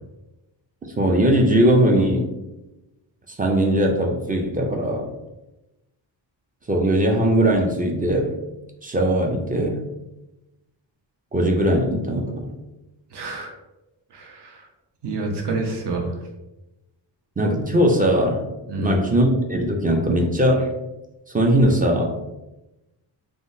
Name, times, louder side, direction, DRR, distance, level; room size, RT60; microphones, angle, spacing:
voice 1, 0.8-2.3 3.3-5.1 6.7-8.4 8.8-9.8 11.3-12.5 17.4-18.5 18.8-20.7 21.3-22.3, right 1 dB, 20° right, 1 dB, 0.3 m, -20 dB
voice 2, 13.1-13.5 14.1-14.6 15.0-16.1 18.7-18.9, right 3 dB, 60° right, 2 dB, 0.7 m, -28 dB
3.6 x 2.0 x 2.6 m, 0.98 s
wide cardioid pair, 105°, 45 cm